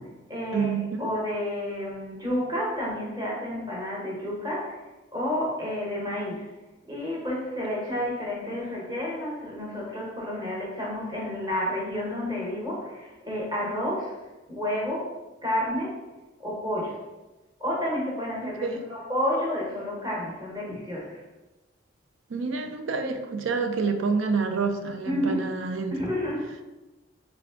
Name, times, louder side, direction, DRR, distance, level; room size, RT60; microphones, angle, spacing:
voice 1, 0.0-0.7 1.0-4.8 5.1-6.5 6.9-14.2 14.5-15.1 15.4-16.0 16.4-17.0 17.6-21.2 25.0-25.4 25.9-26.6, left 1 dB, 20° right, -4 dB, 1.1 m, -30 dB
voice 2, 0.5-1.1 18.4-18.8 22.3-25.9, right 4 dB, 85° right, 6 dB, 0.5 m, -28 dB
3.7 x 3.4 x 3.6 m, 1.1 s
head